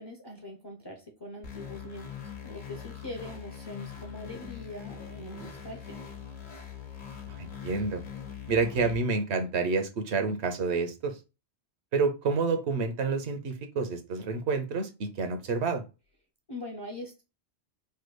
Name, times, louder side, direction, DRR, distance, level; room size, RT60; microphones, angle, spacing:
voice 1, 0.0-2.1 2.4-6.0 16.5-17.2, left 1 dB, 30° left, 2 dB, 0.5 m, -42 dB
distort reese, 1.4-8.9, left 8 dB, 50° left, 0.9 m, -42 dB
voice 2, 7.3-8.0 8.5-11.2 11.9-15.8, right 4 dB, 75° right, 6 dB, 1.0 m, -29 dB
3.3 x 2.2 x 3.1 m, 0.29 s
omnidirectional pair, 1.1 m